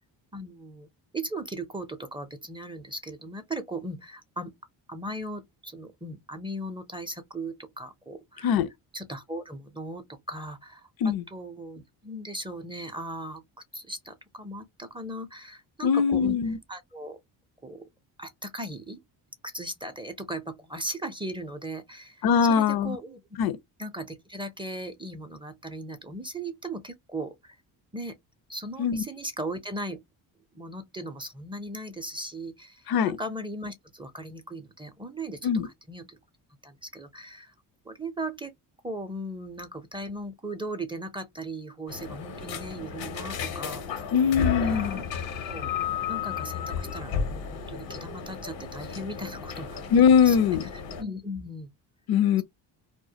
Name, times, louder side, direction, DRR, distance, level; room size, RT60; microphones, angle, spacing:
voice 1, 0.3-0.9 1.1-4.5 4.9-8.6 8.9-13.4 13.7-16.4 16.7-17.2 17.6-17.8 18.2-19.0 19.4-23.2 23.8-27.6 27.9-28.1 28.5-30.0 30.5-36.2 36.6-37.5 37.9-38.5 38.8-44.1 44.6-45.2 45.5-45.7 46.1-49.8 50.2-51.7, right 1 dB, 10° right, 0.5 m, -38 dB
voice 2, 15.8-16.6 22.2-23.0 23.4-23.5 28.8-29.0 32.9-33.2 35.4-35.7 44.1-45.0 49.9-50.6 52.1-52.4, left 7 dB, 60° left, 0.5 m, -21 dB
sound 1, 41.9-51.0, left 7 dB, 85° left, 0.9 m, -33 dB
2.1 x 2.1 x 2.7 m
cardioid pair, 75°, 42 cm